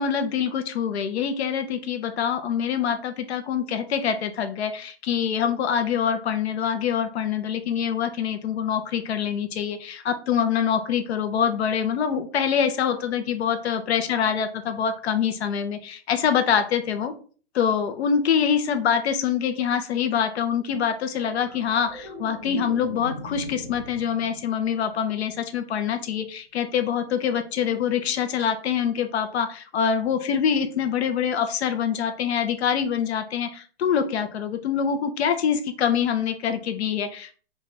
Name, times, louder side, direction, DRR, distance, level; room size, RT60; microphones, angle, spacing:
voice 1, 0.0-17.1 17.5-37.3, left 7 dB, 70° left, 8 dB, 0.7 m, -25 dB
sound 1, 21.1-25.6 28.0-28.2, left 1 dB, 15° left, 0.3 m, -41 dB
3.5 x 2.4 x 4.0 m, 0.41 s
hypercardioid pair, 175°, 33 cm